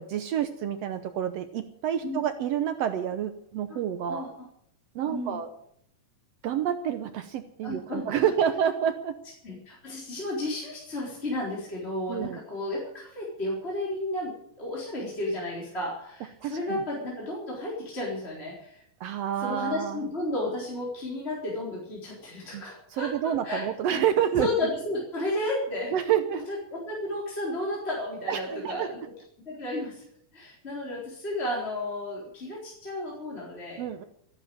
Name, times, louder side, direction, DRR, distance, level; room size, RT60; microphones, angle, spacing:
voice 1, 0.0-4.3 4.9-5.5 6.4-9.2 12.1-12.4 16.4-16.8 19.0-20.0 22.5-22.6 22.9-24.7 25.9-26.5 28.3-29.0 33.8-34.0, right 9 dB, 85° right, 9 dB, 1.4 m, -28 dB
voice 2, 4.1-4.4 5.0-5.4 7.6-8.3 9.4-18.8 19.4-24.0 24.4-26.1 26.5-29.0 29.5-30.0 30.3-33.8, left 1 dB, 15° left, -4 dB, 4.1 m, -33 dB
14.0 x 10.5 x 8.7 m, 0.71 s
omnidirectional pair, 4.0 m